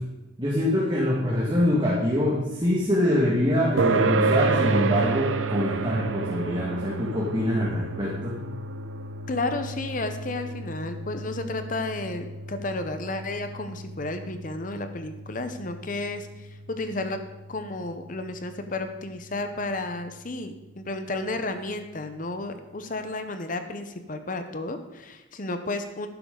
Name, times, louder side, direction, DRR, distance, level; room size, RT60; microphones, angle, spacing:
voice 1, 0.4-8.3, left 1 dB, 25° right, -5 dB, 1.9 m, -24 dB
sound 1, 3.8-18.7, right 4 dB, 85° right, 0.8 m, -30 dB
voice 2, 9.3-17.2 17.5-26.1, left 2 dB, 40° left, 8 dB, 0.8 m, -32 dB
12.5 x 10.5 x 3.9 m, 1.1 s
head